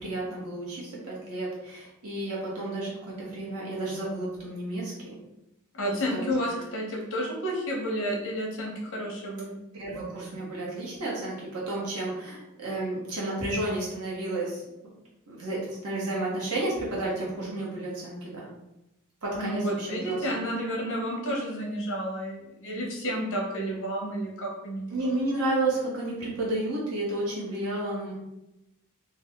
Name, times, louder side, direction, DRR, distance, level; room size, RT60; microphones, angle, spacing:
voice 1, 0.0-5.2 5.9-6.6 9.8-14.9 15.3-18.5 19.2-20.5 24.9-28.1, right 2 dB, 85° right, -5 dB, 1.4 m, -32 dB
voice 2, 5.7-9.5 19.3-25.1, equal, 60° left, -1 dB, 1.0 m, -31 dB
3.5 x 2.5 x 3.6 m, 0.90 s
head